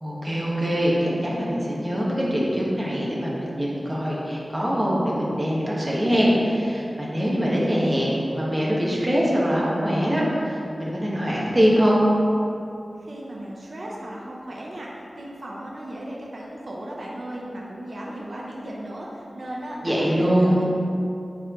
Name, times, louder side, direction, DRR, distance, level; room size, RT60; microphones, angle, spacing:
voice 1, 0.0-12.0 19.8-20.5, equal, 25° right, -5 dB, 1.6 m, -23 dB
voice 2, 13.0-20.7, right 1 dB, 65° right, -4 dB, 0.9 m, -36 dB
9.2 x 4.6 x 3.1 m, 2.7 s
wide cardioid pair, 65°, 0 cm